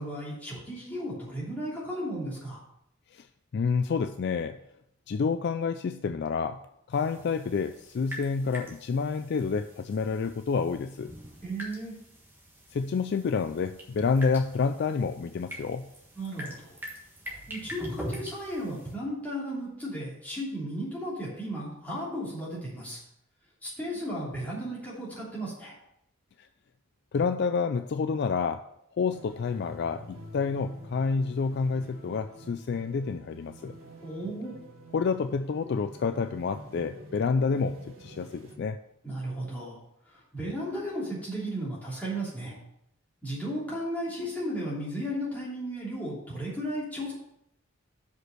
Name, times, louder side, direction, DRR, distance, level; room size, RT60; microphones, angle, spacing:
voice 1, 0.0-2.6 11.4-11.9 16.1-16.7 17.5-23.0 23.6-25.7 34.0-34.5 39.0-39.8 40.1-42.6 43.2-47.1, equal, 10° left, -7 dB, 3.0 m, -35 dB
voice 2, 3.5-4.6 5.1-6.6 6.9-11.1 12.7-15.9 27.1-28.6 29.0-33.7 34.9-38.8, left 5 dB, 50° left, 10 dB, 0.3 m, -28 dB
sound 1, 6.9-18.9, equal, 10° right, 1.4 m, -44 dB
sound 2, 29.1-38.6, equal, 75° right, 1.9 m, -48 dB
6.2 x 5.2 x 6.5 m, 0.78 s
head